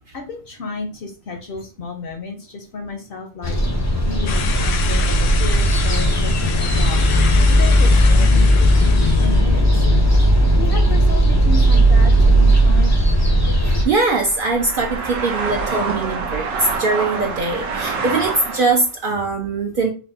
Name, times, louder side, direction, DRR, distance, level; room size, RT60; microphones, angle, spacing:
voice 1, 0.1-3.6 4.0-7.0 7.5-9.9 10.6-13.1, left 4 dB, 60° left, 5 dB, 0.6 m, -32 dB
sound 1, 3.4-13.8, equal, 25° left, 0.3 m, -15 dB
sound 2, 4.3-9.4, left 7 dB, 75° left, 0.9 m, -29 dB
sound 3, 11.7-18.9, right 4 dB, 80° right, 1.1 m, -27 dB
voice 2, 13.6-19.9, right 3 dB, 60° right, 2 dB, 0.6 m, -21 dB
4.6 x 2.2 x 2.6 m, 0.34 s
omnidirectional pair, 1.3 m